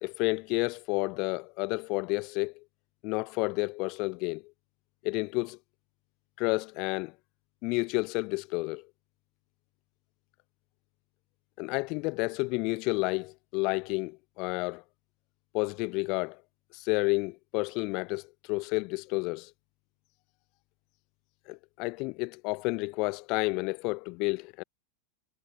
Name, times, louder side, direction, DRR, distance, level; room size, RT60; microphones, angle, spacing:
voice 1, 0.0-2.6 3.0-4.4 5.0-5.6 6.4-7.2 7.6-8.9 11.6-14.8 15.5-16.4 16.7-19.5 21.5-24.6, left 27 dB, 45° left, 0.4 m, -30 dB
figure-of-eight pair, 90°, 0 cm